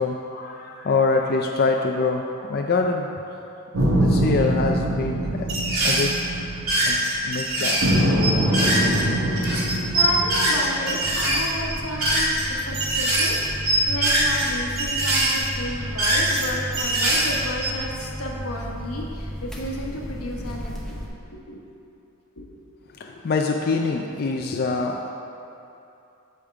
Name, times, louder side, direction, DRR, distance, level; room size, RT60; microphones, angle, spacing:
voice 1, 0.0-2.2 2.5-3.1 3.9-5.5 5.8-6.1 6.8-7.0 7.2-7.8 22.9-25.1, left 4 dB, 45° left, 2 dB, 0.4 m, -24 dB
sound 1, 3.7-7.3 7.8-11.1, right 1 dB, 65° right, 1.0 m, -23 dB
sound 2, 5.5-6.2 6.5-9.1 9.4-12.5 12.7-13.4 13.7-14.5 14.8-16.4 16.7-17.9, right 1 dB, 80° right, 1.9 m, -23 dB
voice 2, 9.9-21.1 21.5-21.6 22.4-22.6 23.0-23.1, left 1 dB, 90° left, -1 dB, 1.1 m, -32 dB
sound 3, 11.0-21.1, equal, ahead, 0.7 m, -34 dB
8.5 x 3.6 x 6.8 m, 2.8 s
head